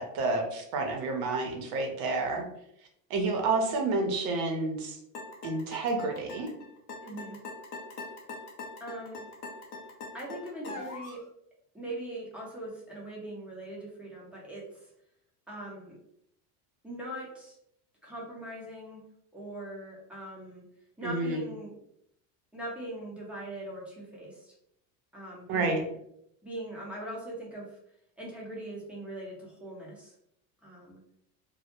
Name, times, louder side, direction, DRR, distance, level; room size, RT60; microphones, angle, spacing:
voice 1, 0.0-2.5 3.1-5.0 5.4-6.5 21.0-21.4 25.5-25.8, right 3 dB, 50° right, 3 dB, 0.7 m, -29 dB
sound 1, 5.1-11.2, left 3 dB, 35° left, 0.6 m, -42 dB
voice 2, 7.0-7.4 8.8-9.2 10.1-11.2 11.7-14.9 15.5-16.0 16.8-17.6 18.0-19.0 19.3-20.6 21.0-21.7 22.5-24.5 25.1-25.8 26.4-27.8 28.2-30.1 30.6-31.0, right 1 dB, 5° right, -6 dB, 0.7 m, -41 dB
2.2 x 2.0 x 2.9 m, 0.75 s
supercardioid pair, 120°, 48 cm